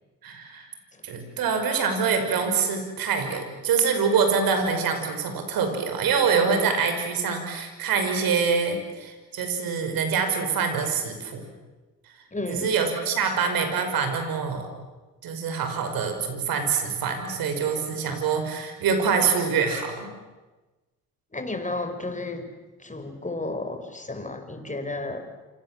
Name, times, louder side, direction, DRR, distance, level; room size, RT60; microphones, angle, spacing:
voice 1, 0.2-0.7 1.0-11.4 12.5-14.7 15.2-20.1, right 5 dB, 80° right, 6 dB, 5.6 m, -25 dB
voice 2, 12.3-12.7 21.3-22.5 22.8-25.3, left 2 dB, 20° left, 7 dB, 5.5 m, -32 dB
28.5 x 26.5 x 7.7 m, 1.2 s
supercardioid pair, 60°, 35 cm